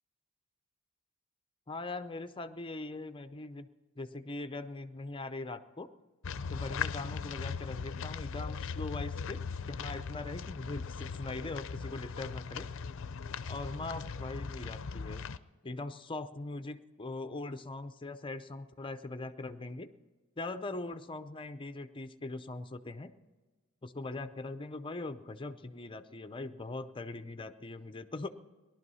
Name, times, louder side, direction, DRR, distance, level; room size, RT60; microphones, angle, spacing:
voice 1, 1.7-3.7 4.0-5.9 6.5-12.7 13.5-15.2 15.6-19.9 20.4-23.1 23.8-28.3, left 2 dB, 25° left, 10 dB, 0.6 m, -41 dB
sound 1, 6.2-15.4, left 5 dB, 65° left, 0.5 m, -39 dB
18.0 x 12.0 x 5.6 m, 1.3 s
head